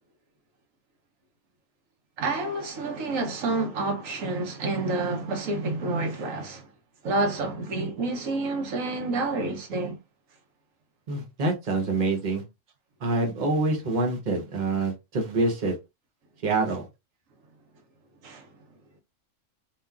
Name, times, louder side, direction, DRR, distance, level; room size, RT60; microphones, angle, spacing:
voice 1, 2.2-6.7 7.0-10.0 18.2-18.5, right 2 dB, 90° right, 1.2 m, -29 dB
voice 2, 11.1-12.4 13.0-15.7 16.4-16.9, right 2 dB, 40° right, 0.9 m, -26 dB
3.0 x 2.3 x 2.3 m
omnidirectional pair, 1.3 m